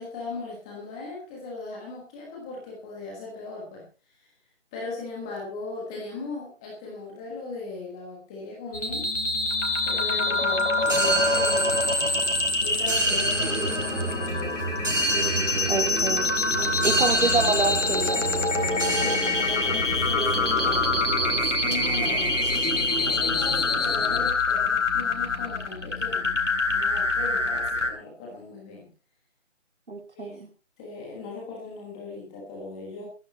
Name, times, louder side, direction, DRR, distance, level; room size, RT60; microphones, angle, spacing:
voice 1, 0.0-3.9 4.2-4.3 4.7-9.1 9.8-11.9 12.6-14.6 19.0-22.4 23.1-26.4 26.7-28.9 30.1-30.4 30.8-33.1, left 3 dB, 5° left, -2 dB, 1.4 m, -38 dB
sound 1, 8.7-27.9, left 3 dB, 70° left, 4.0 m, -25 dB
sound 2, 10.8-24.3, right 2 dB, 80° right, 4.7 m, -29 dB
voice 2, 15.7-16.3 16.8-18.2 29.9-30.5, right 3 dB, 60° right, 6 dB, 3.8 m, -27 dB
14.5 x 14.0 x 4.1 m, 0.34 s
figure-of-eight pair, 170°, 37 cm